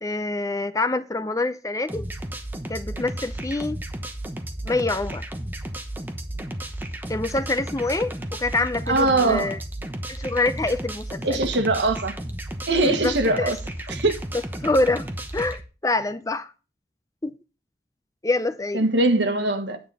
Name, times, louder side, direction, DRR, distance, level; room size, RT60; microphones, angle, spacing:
voice 1, 0.0-2.0 2.7-3.8 4.6-5.2 7.1-9.6 10.1-11.4 12.8-13.5 14.6-15.1 15.3-16.5 17.2-17.3 18.2-18.9, left 2 dB, 20° left, 0.6 m, -26 dB
sound 1, 1.9-15.6, right 1 dB, 10° right, 1.0 m, -33 dB
voice 2, 8.9-9.6 11.2-12.1 12.7-13.6 13.9-14.1 18.7-19.8, right 2 dB, 90° right, 1.6 m, -21 dB
9.5 x 8.6 x 4.1 m
head